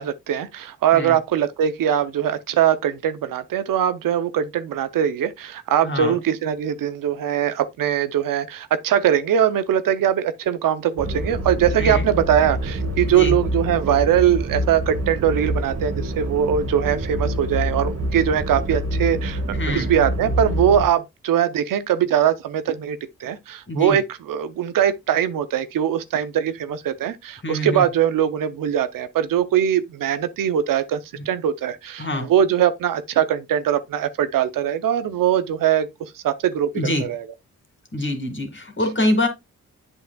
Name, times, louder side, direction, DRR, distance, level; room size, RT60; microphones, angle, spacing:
voice 1, 0.0-19.4 19.7-24.0 24.3-31.0 31.3-35.9 36.2-37.2, right 9 dB, 85° right, 0.6 m, -21 dB
voice 2, 5.8-6.2 11.8-12.1 13.0-13.4 19.5-19.9 23.7-24.0 27.4-27.9 32.0-32.3 36.7-37.0 37.9-39.3, left 1 dB, 35° left, 2.1 m, -25 dB
sound 1, 11.0-20.8, equal, 50° right, 1.5 m, -26 dB
7.9 x 5.7 x 2.2 m
cardioid pair, 45°, 32 cm